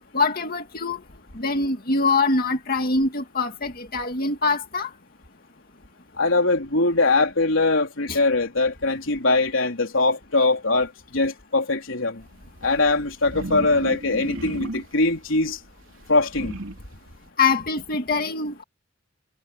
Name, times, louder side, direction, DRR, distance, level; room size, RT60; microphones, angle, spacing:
voice 1, 0.1-1.0 1.3-4.9 8.1-8.2 17.4-18.6, left 3 dB, 50° left, 2.3 m, -24 dB
voice 2, 6.2-12.2 12.6-15.6 16.1-16.6, left 3 dB, 85° left, 3.7 m, -22 dB
sound 1, 12.2-17.3, right 1 dB, 80° right, 3.5 m, -36 dB
head